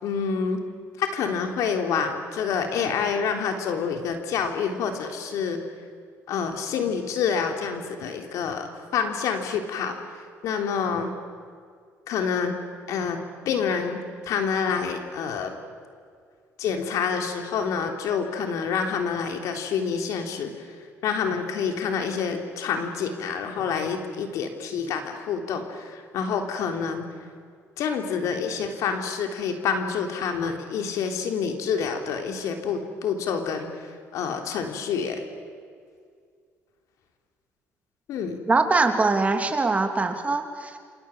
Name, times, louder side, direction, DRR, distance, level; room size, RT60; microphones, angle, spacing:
voice 1, 0.0-0.6 1.0-5.6 6.3-10.0 10.4-11.1 12.1-12.5 12.9-13.2 13.5-15.6 16.6-20.5 21.0-27.1 27.8-35.2 38.1-38.4, left 6 dB, 75° left, 4 dB, 3.6 m, -27 dB
voice 2, 38.5-40.8, right 3 dB, 25° right, 5 dB, 3.0 m, -22 dB
28.0 x 27.5 x 7.4 m, 2.1 s
cardioid pair, 95°, 6 cm